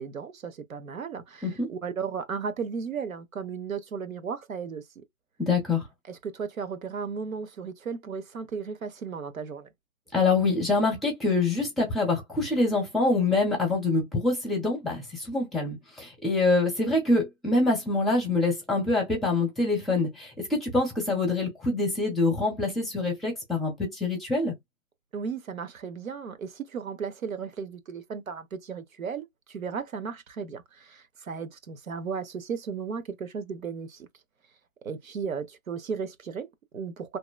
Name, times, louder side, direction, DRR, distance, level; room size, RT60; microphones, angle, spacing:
voice 1, 0.0-4.8 6.1-9.7 25.1-34.1 34.8-37.2, right 6 dB, 85° right, 0.9 m, -35 dB
voice 2, 5.4-5.9 10.1-24.5, left 3 dB, ahead, 0.4 m, -25 dB
2.8 x 2.3 x 2.3 m
hypercardioid pair, 165°, 40 cm